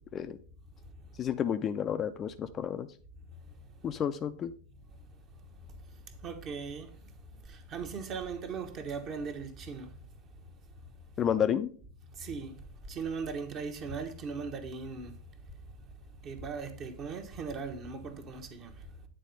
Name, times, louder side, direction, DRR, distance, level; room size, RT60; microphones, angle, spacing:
voice 1, 1.2-2.9 3.8-4.5 11.2-11.7, left 9 dB, 25° left, 0.4 m, -30 dB
voice 2, 6.2-6.9 7.5-9.9 12.2-12.5 12.9-15.1 16.2-18.7, right 5 dB, 35° right, 1.1 m, -38 dB
9.0 x 4.2 x 5.2 m
figure-of-eight pair, 90°, 0 cm